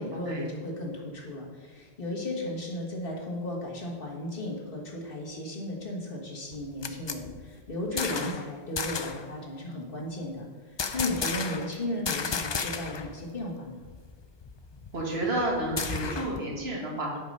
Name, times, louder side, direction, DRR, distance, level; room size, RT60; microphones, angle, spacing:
voice 1, 0.0-10.4 10.9-13.8, left 1 dB, 60° left, -1 dB, 1.7 m, -35 dB
sound 1, 6.5-8.5 8.8-9.3 10.8-11.8 12.1-13.1 13.4-13.5 13.8-16.4, left 5 dB, 40° left, 0.4 m, -33 dB
voice 2, 7.9-8.3 14.9-17.2, right 1 dB, 80° right, -2 dB, 2.0 m, -31 dB
8.4 x 5.5 x 5.3 m, 1.4 s
omnidirectional pair, 1.0 m